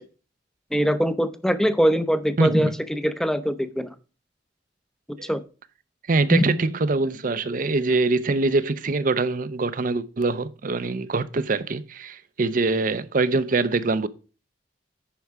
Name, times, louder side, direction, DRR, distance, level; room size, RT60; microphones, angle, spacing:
voice 1, 0.7-3.9 5.2-5.4 6.3-6.4, equal, 5° left, 0.6 m, -22 dB
voice 2, 2.4-2.7 5.2-5.3 6.1-14.1, right 3 dB, 50° right, 0.6 m, -24 dB
10.5 x 4.7 x 4.7 m
head